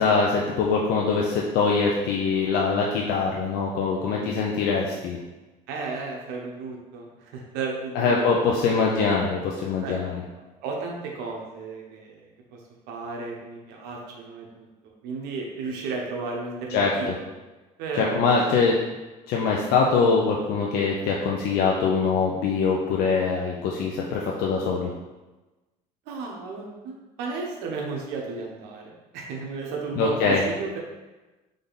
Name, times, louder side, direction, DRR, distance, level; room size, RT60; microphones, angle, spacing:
voice 1, 0.0-5.2 7.9-10.2 16.7-17.1 18.0-18.8 19.3-24.9 29.9-30.4, left 4 dB, 75° left, -2 dB, 0.6 m, -23 dB
voice 2, 4.0-4.5 5.7-8.3 9.8-10.1 10.6-12.6 12.9-17.2 17.8-18.2 18.5-18.6 26.1-30.8, right 4 dB, 90° right, -1 dB, 1.0 m, -34 dB
4.0 x 3.4 x 3.9 m, 1.1 s
cardioid pair, 120°, 16 cm